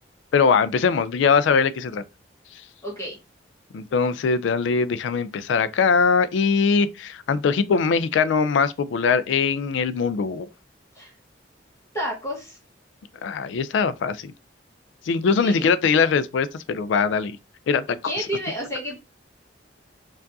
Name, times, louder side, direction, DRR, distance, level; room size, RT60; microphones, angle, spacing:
voice 1, 0.3-2.0 3.7-10.5 13.2-14.3 15.0-17.4 17.7-18.3, left 5 dB, 75° left, 0.3 m, -21 dB
voice 2, 2.8-3.2 10.9-11.1 11.9-12.6 15.4-15.7 18.0-19.0, equal, 15° left, 1.1 m, -30 dB
4.5 x 2.4 x 2.6 m
head